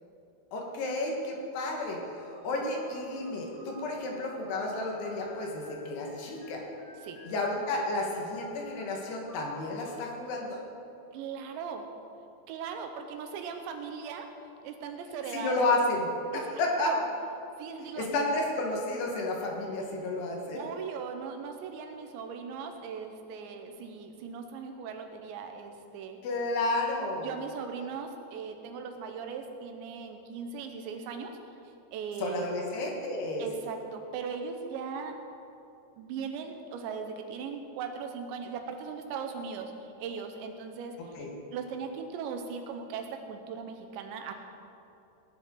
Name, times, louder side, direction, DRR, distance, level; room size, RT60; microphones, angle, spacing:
voice 1, 0.5-2.0 2.4-6.6 7.3-10.6 15.3-16.1 16.3-17.0 18.0-20.6 26.2-27.3 32.2-33.5 41.0-41.3, left 2 dB, 70° left, 0 dB, 3.5 m, -31 dB
sound 1, 1.8-9.8, left 1 dB, 45° left, 4.6 m, -51 dB
voice 2, 11.1-11.8 12.5-14.3 14.6-15.8 16.3-16.4 16.9-17.0 17.6-18.3 20.6-26.2 27.2-31.3 31.9-32.5 33.4-35.2 36.0-39.7 40.0-41.0 41.5-44.3, right 6 dB, 85° right, 5 dB, 3.3 m, -38 dB
18.0 x 11.0 x 3.9 m, 2.8 s
omnidirectional pair, 5.0 m